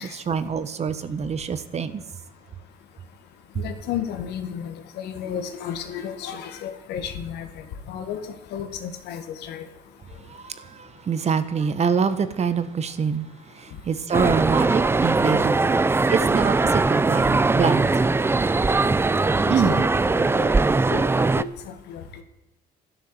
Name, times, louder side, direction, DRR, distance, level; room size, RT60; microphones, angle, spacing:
voice 1, 0.0-1.9 3.5-3.6 10.3-13.3 13.5-15.8 16.1-18.1 19.5-19.8, right 6 dB, 40° right, 13 dB, 1.4 m, -25 dB
voice 2, 3.6-7.5 7.9-8.2 8.5-9.7 19.4-19.9 20.3-20.5 20.9-21.1 21.4-22.0, left 8 dB, 80° left, 8 dB, 2.0 m, -32 dB
sound 1, 14.1-21.4, right 3 dB, 15° right, 0.5 m, -20 dB
12.5 x 12.5 x 8.1 m, 0.99 s
cardioid pair, 110°, 17 cm